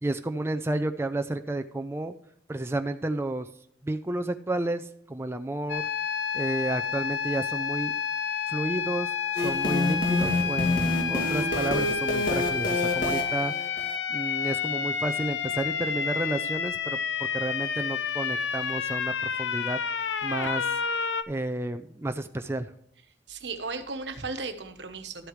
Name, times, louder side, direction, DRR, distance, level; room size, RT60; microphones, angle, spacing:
voice 1, 0.0-2.1 2.5-3.5 3.8-5.8 6.3-7.9 8.5-17.0 17.3-19.8 20.2-20.7 21.3-22.7, right 2 dB, 15° right, 8 dB, 0.4 m, -31 dB
sound 1, 5.7-21.2, left 6 dB, 90° left, 0.7 m, -30 dB
sound 2, 9.4-14.0, left 2 dB, 50° left, 2.2 m, -28 dB
voice 2, 23.3-25.3, right 4 dB, 75° right, 8 dB, 1.2 m, -35 dB
12.5 x 8.2 x 3.1 m, 0.70 s
head